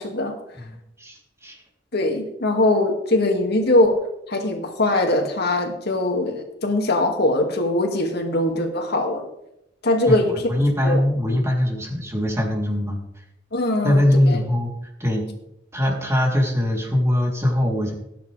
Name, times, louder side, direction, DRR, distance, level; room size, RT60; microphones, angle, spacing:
voice 1, 0.0-0.4 1.9-4.0 4.3-9.3 9.8-10.5 10.8-11.0 13.5-14.4, left 1 dB, 60° left, 3 dB, 2.3 m, -21 dB
voice 2, 0.5-1.6 10.1-13.0 13.8-14.7 15.0-15.2 15.7-17.9, left 1 dB, 15° right, -2 dB, 3.5 m, -22 dB
19.0 x 10.0 x 3.5 m, 0.83 s
head